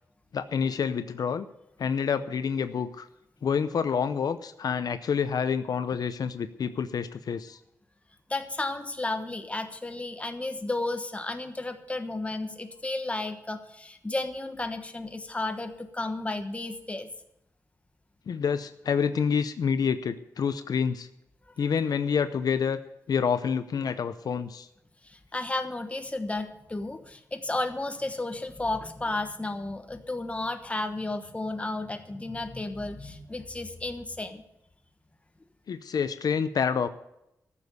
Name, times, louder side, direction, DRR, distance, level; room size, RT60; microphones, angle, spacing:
voice 1, 0.3-1.5 1.8-3.1 3.4-7.6 18.3-21.1 21.6-22.8 23.1-24.7 35.7-36.9, left 6 dB, 75° left, 11 dB, 0.6 m, -28 dB
voice 2, 8.3-17.1 25.0-34.4, left 2 dB, 20° left, 7 dB, 1.2 m, -33 dB
14.0 x 7.1 x 8.2 m, 0.84 s
wide cardioid pair, 105°, 7 cm